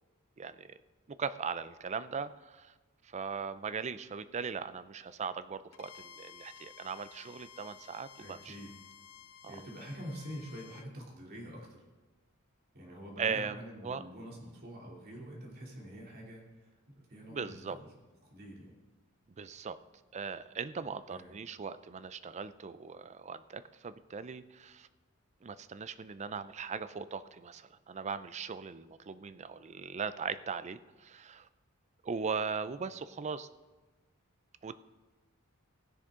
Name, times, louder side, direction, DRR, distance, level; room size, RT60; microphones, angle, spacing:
voice 1, 0.4-0.7 1.1-2.7 3.0-8.5 9.4-9.6 13.2-14.0 17.3-17.8 19.4-19.8 20.1-24.9 25.4-31.5 32.0-33.5 34.6-34.7, right 5 dB, 30° right, 13 dB, 0.4 m, -39 dB
Bowed string instrument, 5.7-10.9, left 7 dB, 80° left, 0.5 m, -54 dB
voice 2, 8.2-8.7 9.5-11.8 12.7-16.7 17.1-17.9 18.3-18.8 20.8-20.9 21.1-21.4, equal, 45° right, -2 dB, 2.9 m, -46 dB
16.0 x 10.0 x 3.7 m, 1.2 s
head